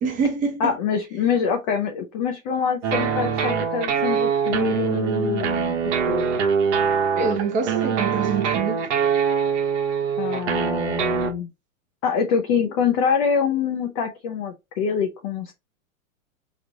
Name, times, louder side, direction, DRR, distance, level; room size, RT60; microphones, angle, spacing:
voice 1, 0.0-0.8 7.1-8.9, right 5 dB, 20° right, 0.7 m, -25 dB
voice 2, 0.6-6.3 10.2-11.5 12.0-15.5, left 6 dB, 25° left, 0.4 m, -25 dB
sound 1, 2.8-11.3, right 7 dB, 55° right, 1.2 m, -23 dB
4.9 x 3.0 x 2.7 m
hypercardioid pair, 145°, 41 cm